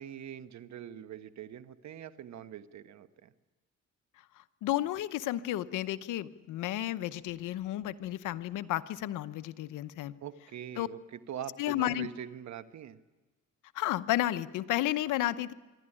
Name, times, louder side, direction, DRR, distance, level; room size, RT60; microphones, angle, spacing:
voice 1, 0.0-3.3 10.2-13.0, right 10 dB, 65° right, 11 dB, 1.3 m, -43 dB
voice 2, 4.4-10.1 10.8-10.9 11.6-12.1 13.7-15.5, left 14 dB, 85° left, 13 dB, 0.9 m, -32 dB
25.5 x 12.5 x 10.0 m, 1.2 s
cardioid pair, 90°, 30 cm